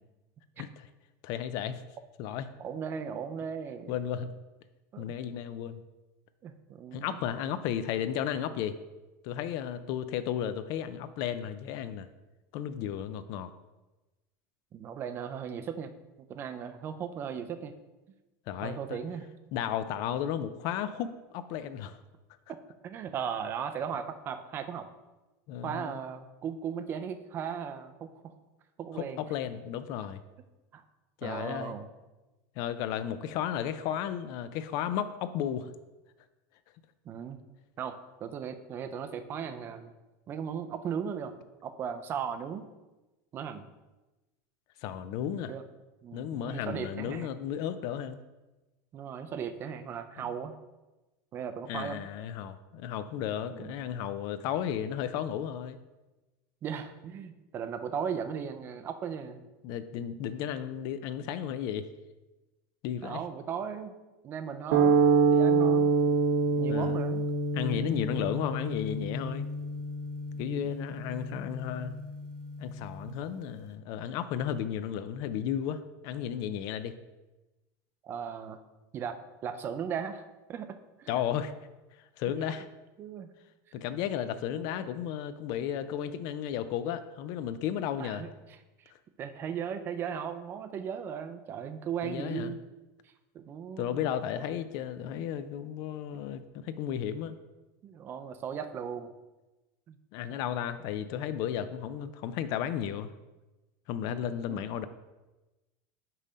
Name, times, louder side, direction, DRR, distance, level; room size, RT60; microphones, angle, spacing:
voice 1, 1.2-1.8 2.2-2.5 3.9-4.3 5.0-5.8 6.9-8.8 9.2-12.1 12.5-13.5 18.5-19.0 19.5-22.0 25.5-26.0 28.9-30.2 31.2-31.8 32.6-35.7 44.8-45.5 46.1-48.2 50.2-50.3 51.7-55.8 59.6-61.9 62.8-63.2 66.7-67.0 67.5-69.5 70.4-71.9 72.6-77.0 81.1-81.5 82.2-82.7 83.7-88.3 92.0-92.5 93.8-97.4 100.1-103.1 103.9-104.9, left 9 dB, 45° left, 12 dB, 0.4 m, -34 dB
voice 2, 2.6-3.9 4.9-5.1 6.4-7.3 14.7-15.9 16.2-17.7 18.6-19.3 22.8-24.9 25.6-28.3 28.8-29.2 30.7-30.8 31.2-31.9 37.1-37.4 37.8-39.9 40.3-41.3 41.6-42.7 43.3-43.7 45.5-45.6 46.0-47.3 48.9-50.5 51.3-52.1 53.5-53.8 56.6-59.4 63.0-64.0 64.2-65.0 65.3-66.0 66.6-67.2 70.5-70.7 78.0-78.6 78.9-81.1 83.0-83.3 84.6-84.9 88.0-88.3 88.8-88.9 89.2-92.6 93.3-94.1 94.4-94.5 95.1-95.3 97.8-99.1 99.9-100.0 104.5-104.6, right 7 dB, 25° right, 9 dB, 0.4 m, -37 dB
sound 1, 64.7-73.1, right 4 dB, 85° right, 0.8 m, -27 dB
5.5 x 4.1 x 5.0 m, 1.1 s
supercardioid pair, 165°, 9 cm